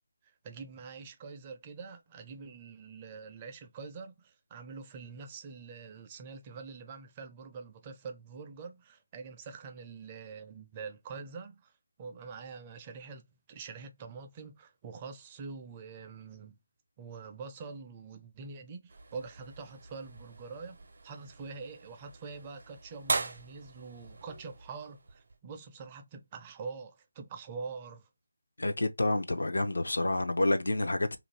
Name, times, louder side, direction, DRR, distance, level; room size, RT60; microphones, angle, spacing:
voice 1, 0.2-11.7 12.0-16.6 17.0-20.8 21.0-28.1, right 5 dB, 25° right, 0.4 m, -45 dB
sound 1, 18.9-25.4, right 3 dB, 60° right, 0.7 m, -40 dB
voice 2, 28.6-31.2, left 2 dB, 80° left, 0.6 m, -28 dB
2.5 x 2.2 x 3.2 m
figure-of-eight pair, 160°, 0 cm